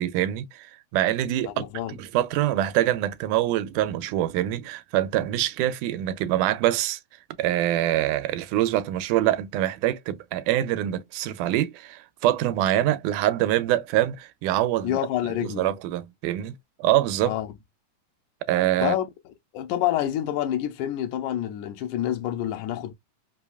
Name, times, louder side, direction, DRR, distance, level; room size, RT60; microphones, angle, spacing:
voice 1, 0.0-1.7 2.0-7.0 7.4-15.0 15.4-17.4 18.5-19.0, right 13 dB, 90° right, 2.1 m, -25 dB
voice 2, 1.4-2.0 14.8-15.7 17.2-17.5 18.8-19.1 19.5-22.9, left 12 dB, 85° left, 2.2 m, -27 dB
5.2 x 2.3 x 2.3 m
omnidirectional pair, 3.5 m